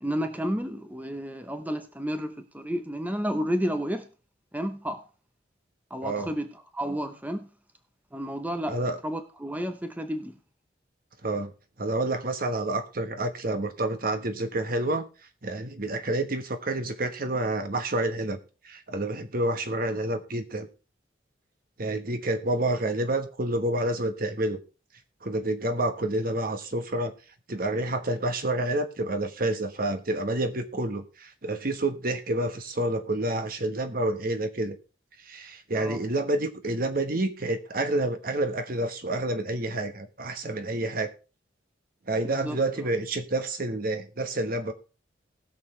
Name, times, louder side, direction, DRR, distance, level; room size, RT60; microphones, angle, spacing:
voice 1, 0.0-4.1 4.5-5.0 5.9-7.5 8.1-10.4 35.7-36.0 42.2-42.6, equal, 10° right, 0.8 m, -31 dB
voice 2, 11.8-15.0 15.4-18.4 18.6-20.7 21.8-24.6 25.2-27.1 27.5-34.8 35.3-41.1 42.1-44.7, right 1 dB, 50° right, 1.3 m, -28 dB
19.5 x 6.7 x 3.3 m
head